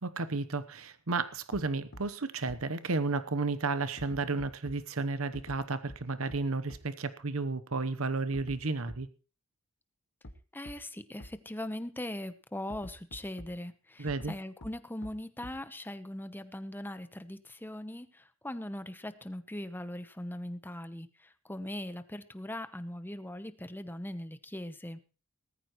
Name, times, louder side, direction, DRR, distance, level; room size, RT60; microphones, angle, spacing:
voice 1, 0.0-9.1 14.0-14.3, right 3 dB, 70° right, 13 dB, 1.0 m, -32 dB
sound 1, 1.5-1.6 1.9-2.0 2.5-2.6 4.0-4.8 5.3-5.6 5.9-6.0 6.3-6.4 6.7-6.8 8.3-8.6 8.9-9.0 10.2-10.3 10.7-10.8 11.2-11.3 12.7-13.5 14.1-14.3 14.6-14.7 15.0-15.1 15.4-15.5, left 1 dB, 60° left, 1.7 m, -46 dB
voice 2, 10.5-25.0, left 1 dB, 10° left, 11 dB, 0.9 m, -40 dB
19.0 x 14.0 x 3.1 m, 0.34 s
head